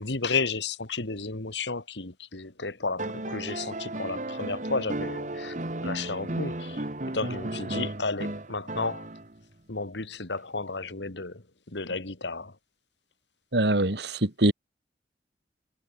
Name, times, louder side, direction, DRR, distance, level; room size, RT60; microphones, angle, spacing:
voice 1, 0.0-5.6 5.8-6.9 7.1-9.1 9.7-12.5, left 3 dB, 75° left, 2.2 m, -32 dB
sound 1, 3.0-9.4 10.9-11.0, right 1 dB, 45° right, 1.9 m, -34 dB
voice 2, 13.5-14.5, right 1 dB, 65° right, 2.5 m, -23 dB
head